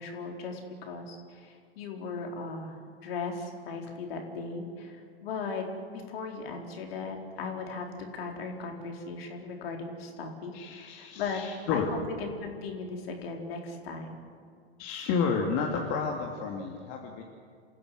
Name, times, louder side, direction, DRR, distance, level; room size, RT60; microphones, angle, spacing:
voice 1, 0.0-2.8 3.0-11.4 11.7-14.2 14.9-15.1, left 4 dB, 60° left, 2 dB, 4.4 m, -37 dB
voice 2, 10.5-11.9 14.8-17.2, left 5 dB, 45° left, 0 dB, 2.7 m, -31 dB
28.0 x 15.5 x 7.7 m, 2.2 s
figure-of-eight pair, 95°, 33 cm